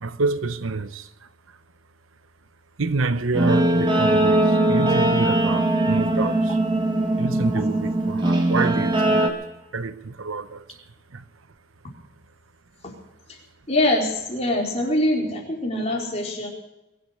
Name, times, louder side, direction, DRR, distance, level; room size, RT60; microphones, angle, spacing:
voice 1, 0.0-1.1 2.8-6.6 7.2-9.4 9.7-10.6 11.1-11.2, right 3 dB, 85° right, 0.9 m, -28 dB
Guitar, 3.3-9.3, right 1 dB, 25° right, 2.0 m, -20 dB
voice 2, 13.7-16.5, left 1 dB, 30° left, 4.5 m, -23 dB
23.0 x 8.9 x 6.7 m
head